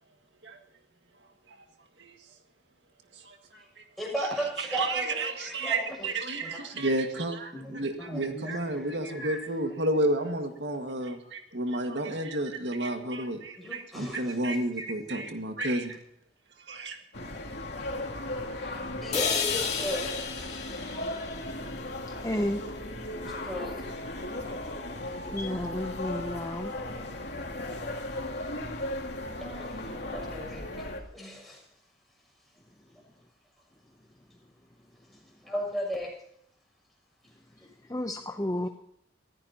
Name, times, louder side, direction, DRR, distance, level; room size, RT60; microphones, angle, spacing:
voice 1, 4.0-6.1 6.4-6.8 7.5-9.2 13.6-14.4 18.6-20.1 20.7-20.8 23.1-23.8 29.4-30.6 31.1-31.6 35.4-36.1, equal, ahead, -2 dB, 7.0 m, -36 dB
voice 2, 4.6-16.0 16.7-17.0, right 1 dB, 80° right, 5 dB, 1.9 m, -31 dB
sound 1, 17.1-31.0, left 1 dB, 70° left, 2.8 m, -36 dB
sound 2, 19.1-23.1, left 6 dB, 35° left, 2.2 m, -34 dB
voice 3, 22.2-22.6 25.3-26.7 37.9-38.7, left 1 dB, 20° left, 5 dB, 0.7 m, -31 dB
24.5 x 15.5 x 2.9 m, 0.70 s
head